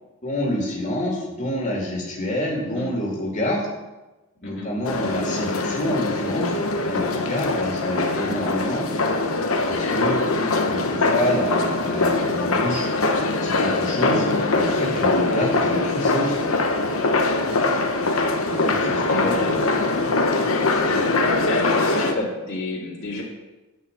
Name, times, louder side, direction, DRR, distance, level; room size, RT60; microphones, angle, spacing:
voice 1, 0.2-3.7 4.4-6.5 6.9-8.8 9.7-10.2 10.7-12.9 13.3-14.3 14.5-16.4 18.4-19.6 20.8-21.0, equal, 35° left, -2 dB, 2.6 m, -27 dB
voice 2, 2.6-3.0 4.4-4.8 10.3-10.6 17.5-17.9 19.1-20.1 21.4-23.2, left 1 dB, 65° left, -4 dB, 2.3 m, -32 dB
sound 1, 4.8-22.1, left 3 dB, 80° left, 1.0 m, -22 dB
10.5 x 5.3 x 8.2 m, 1.1 s
head